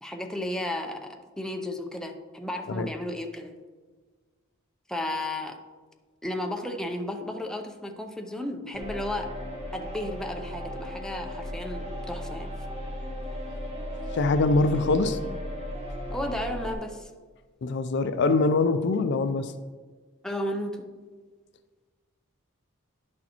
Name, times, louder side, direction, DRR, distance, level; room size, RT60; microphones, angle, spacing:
voice 1, 0.0-3.5 4.9-5.6 6.2-9.3 9.7-12.5 16.1-17.1 20.2-20.9, left 1 dB, 5° left, 3 dB, 0.5 m, -33 dB
sound 1, 8.7-16.7, equal, 30° right, 1.2 m, -36 dB
voice 2, 14.1-15.2 17.6-19.5, left 3 dB, 55° left, 10 dB, 0.4 m, -23 dB
10.0 x 6.3 x 2.9 m, 1.4 s
head